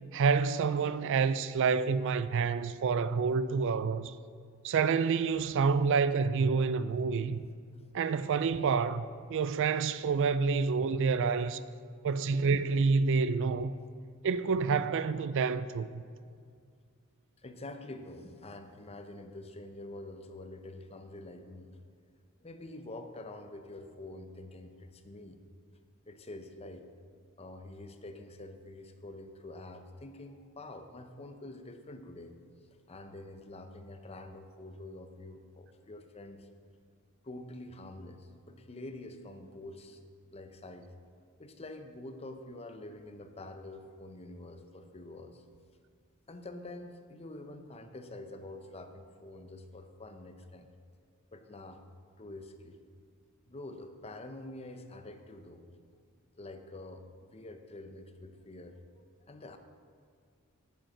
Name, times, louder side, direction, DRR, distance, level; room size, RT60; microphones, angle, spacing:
voice 1, 0.1-4.1 4.6-7.5 7.9-9.0 9.3-11.6 12.0-13.7 14.2-16.0, right 5 dB, 60° right, 0.4 m, -28 dB
voice 2, 17.4-21.8 22.4-25.4 26.1-26.9 27.4-32.3 32.9-36.5 37.2-40.0 40.3-40.9 41.4-45.4 46.3-50.7 51.3-51.8 52.2-52.8 53.5-55.6 56.4-59.6, left 2 dB, 30° left, 0.7 m, -46 dB
9.0 x 7.8 x 6.0 m
head